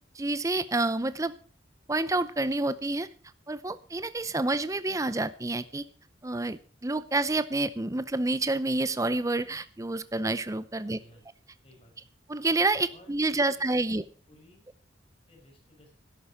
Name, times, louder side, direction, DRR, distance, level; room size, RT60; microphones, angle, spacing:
voice 1, 0.2-1.3 1.9-3.1 3.5-5.8 6.2-11.0 12.3-14.0, right 2 dB, 15° right, 14 dB, 0.6 m, -28 dB
voice 2, 10.8-11.2 11.6-12.1 12.9-14.0 14.3-14.7 15.3-16.0, left 1 dB, 30° left, 1 dB, 5.4 m, -57 dB
12.5 x 11.0 x 4.9 m, 0.38 s
head